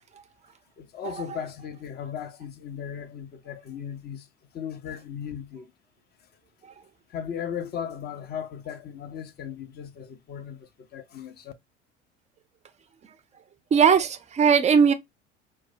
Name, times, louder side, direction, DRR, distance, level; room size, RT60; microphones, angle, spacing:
voice 1, 0.8-4.3 4.5-5.7 7.1-11.5, left 8 dB, 30° left, 0.6 m, -37 dB
voice 2, 13.7-14.9, right 6 dB, 20° right, 0.5 m, -18 dB
4.6 x 2.2 x 2.5 m
figure-of-eight pair, 70°, 36 cm